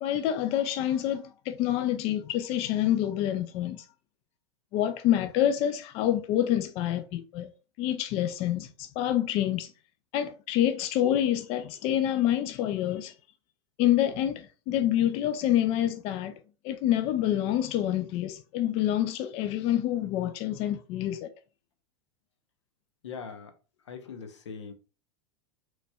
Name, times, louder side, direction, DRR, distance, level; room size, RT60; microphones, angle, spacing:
voice 1, 0.0-3.9 4.7-7.5 7.8-9.7 10.1-13.1 13.8-16.3 16.6-21.3, left 11 dB, 45° left, 0.4 m, -27 dB
voice 2, 23.0-23.5 23.9-24.7, left 6 dB, 80° left, 0.8 m, -41 dB
4.0 x 3.1 x 2.3 m
hypercardioid pair, 95°, 15 cm